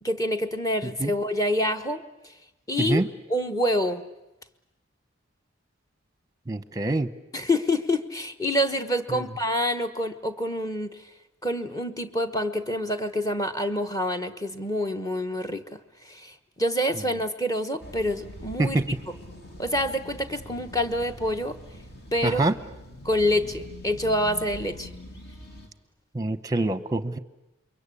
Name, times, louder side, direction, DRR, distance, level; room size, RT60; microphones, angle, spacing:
voice 1, 0.0-2.3 2.7-3.0 3.3-4.0 7.3-11.0 11.4-18.8 19.6-21.6 22.1-22.4 23.0-24.9, left 1 dB, 15° left, 7 dB, 1.1 m, -27 dB
voice 2, 6.5-7.1 9.1-9.2 18.6-19.0 22.2-22.5 26.1-27.2, right 2 dB, 20° right, 13 dB, 0.9 m, -25 dB
sound 1, 17.8-25.7, equal, 55° left, 2.6 m, -43 dB
28.0 x 23.0 x 8.4 m, 0.96 s
head